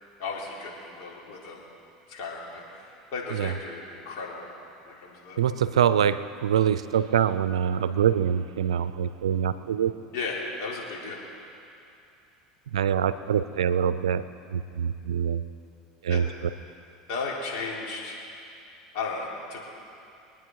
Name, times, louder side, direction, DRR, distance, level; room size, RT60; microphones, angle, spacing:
voice 1, 0.2-1.6 2.1-4.5 4.8-5.4 10.1-11.2 16.1-16.2 17.1-18.2 18.9-19.6, left 3 dB, 65° left, -3 dB, 3.7 m, -35 dB
voice 2, 5.4-10.1 12.7-15.4 16.0-16.3, right 8 dB, 90° right, 14 dB, 0.5 m, -25 dB
24.5 x 9.4 x 4.8 m, 2.7 s
hypercardioid pair, 90°, 3 cm